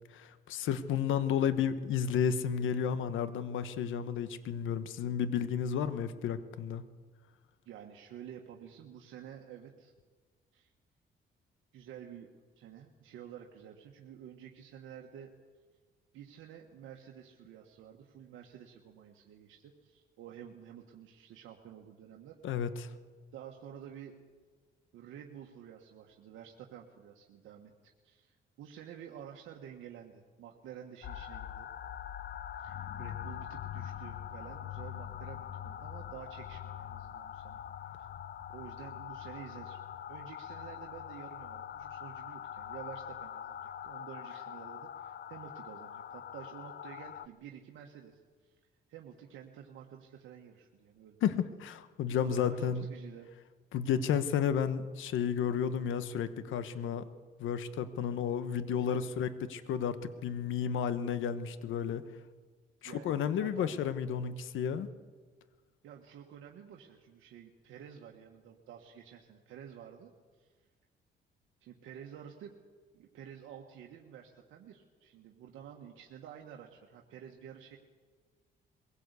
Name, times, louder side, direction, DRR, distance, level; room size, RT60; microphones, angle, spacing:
voice 1, 0.1-6.8 22.4-22.9 51.2-52.8 53.7-57.1 57.4-62.0 62.8-64.9, left 8 dB, 80° left, 12 dB, 1.2 m, -32 dB
voice 2, 7.6-9.9 10.5-10.7 11.7-12.3 12.6-15.3 16.1-22.4 23.3-24.1 24.9-27.7 28.0-31.7 32.6-37.9 38.5-39.8 40.1-48.5 48.9-51.2 52.2-53.3 58.7-59.1 62.8-63.8 65.8-70.1 70.4-70.5 71.6-72.6 72.9-77.8, right 9 dB, 85° right, 1 dB, 1.6 m, -50 dB
sound 1, 31.0-47.3, left 10 dB, 55° left, 0.7 m, -43 dB
22.0 x 16.5 x 8.2 m, 1.5 s
cardioid pair, 90°, 20 cm